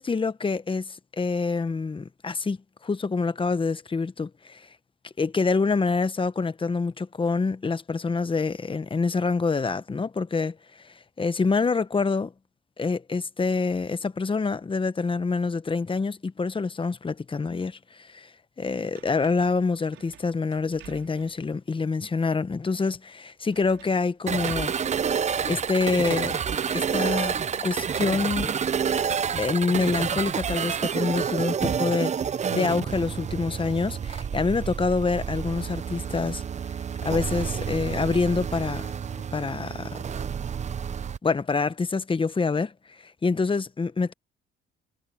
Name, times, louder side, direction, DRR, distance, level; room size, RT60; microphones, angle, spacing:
voice 1, 0.0-4.7 5.2-10.6 10.8-12.3 12.8-18.3 18.6-24.7 25.4-26.4 26.7-27.3 27.6-28.5 29.3-32.1 32.5-36.4 37.0-38.9 39.3-40.0 41.2-44.1, left 4 dB, 25° left, 1.0 m, -26 dB
sound 1, 18.9-21.5 22.0-22.1 23.5-24.0 24.3-24.9 25.9-26.0 26.3-27.8, right 14 dB, 90° right, 4.5 m, -49 dB
sound 2, 24.3-41.2, right 7 dB, 35° right, 0.6 m, -29 dB
cardioid pair, 90°, 20 cm